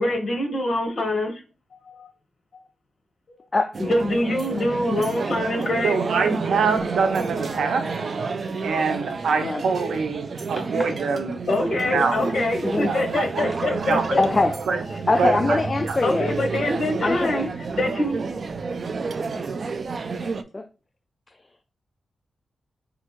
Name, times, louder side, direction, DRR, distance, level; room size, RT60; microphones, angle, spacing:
voice 1, 0.0-1.4 1.7-2.1 3.8-6.0 11.5-14.2 16.0-17.5 17.8-18.2 19.3-19.4, left 1 dB, 55° left, 1.2 m, -24 dB
sound 1, 3.7-20.4, right 4 dB, 50° right, 0.4 m, -30 dB
voice 2, 5.8-8.0 8.6-11.4 11.8-12.2 12.8-14.2 14.7-14.8 15.2-15.6 15.8-16.0, right 5 dB, 85° right, 0.7 m, -25 dB
voice 3, 12.6-12.9 14.2-14.6 15.1-16.3 17.0-17.5 20.5-20.6, left 2 dB, 25° left, 0.3 m, -22 dB
4.3 x 2.3 x 3.0 m
cardioid pair, 100°, 0 cm